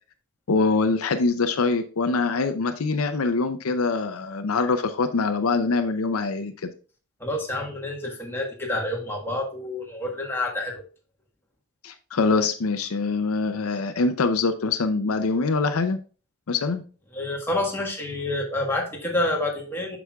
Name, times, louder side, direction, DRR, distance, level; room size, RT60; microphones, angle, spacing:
voice 1, 0.5-6.7 11.8-16.0 16.5-16.8, left 3 dB, 70° left, 8 dB, 0.6 m, -24 dB
voice 2, 7.2-10.8 17.1-20.0, left 1 dB, 10° left, -2 dB, 1.4 m, -28 dB
8.1 x 6.0 x 2.3 m, 0.37 s
head